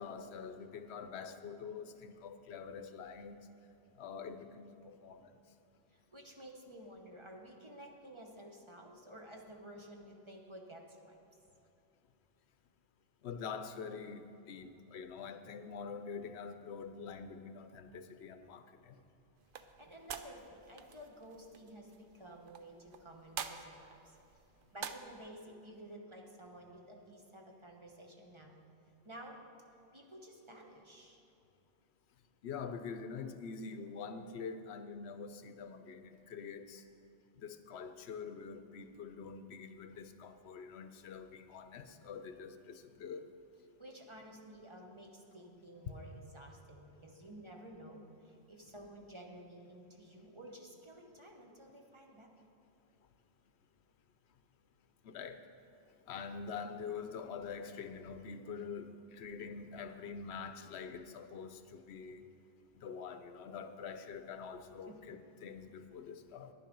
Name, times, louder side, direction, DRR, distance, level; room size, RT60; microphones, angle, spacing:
voice 1, 0.0-3.4 4.0-5.2 13.2-18.9 32.4-36.8 37.4-43.3 45.9-46.0 55.0-55.4 56.1-62.2 62.7-66.5, left 6 dB, 80° left, 9 dB, 0.9 m, -45 dB
voice 2, 5.9-11.2 19.6-24.2 24.7-28.6 29.0-29.4 29.9-31.2 43.8-52.3 64.9-65.1, right 1 dB, 30° right, 1 dB, 1.1 m, -52 dB
sound 1, 19.4-25.3, right 7 dB, 60° right, 0.7 m, -48 dB
10.5 x 10.5 x 5.2 m, 2.8 s
omnidirectional pair, 1.1 m